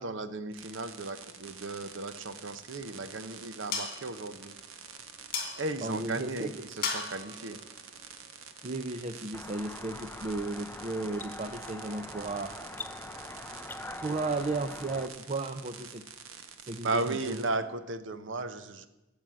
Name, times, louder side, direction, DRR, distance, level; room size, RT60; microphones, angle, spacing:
voice 1, 0.0-4.5 5.6-7.6 16.8-18.9, right 2 dB, 65° right, 11 dB, 0.9 m, -35 dB
sound 1, 0.5-17.5, right 7 dB, 85° right, 1.2 m, -48 dB
sound 2, 2.5-9.0, left 5 dB, 45° left, 2.5 m, -40 dB
voice 2, 5.8-6.6 8.6-12.5 14.0-16.0 16.6-17.4, right 3 dB, 35° right, 8 dB, 0.6 m, -34 dB
sound 3, 9.3-15.1, left 2 dB, 10° left, 0.5 m, -43 dB
14.0 x 7.3 x 7.5 m, 1.0 s
head